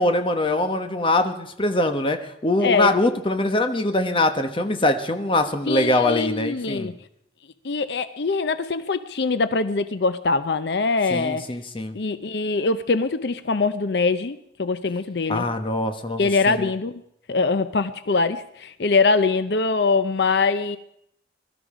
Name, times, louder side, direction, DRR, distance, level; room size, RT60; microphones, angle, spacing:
voice 1, 0.0-6.9 11.1-12.0 15.3-16.2 16.5-16.7, left 2 dB, 30° left, 6 dB, 1.2 m, -23 dB
voice 2, 2.6-2.9 5.7-6.9 7.6-11.4 11.9-15.5 16.2-17.0 17.3-20.8, left 4 dB, 70° left, 12 dB, 0.6 m, -23 dB
22.0 x 13.0 x 5.0 m, 0.75 s
head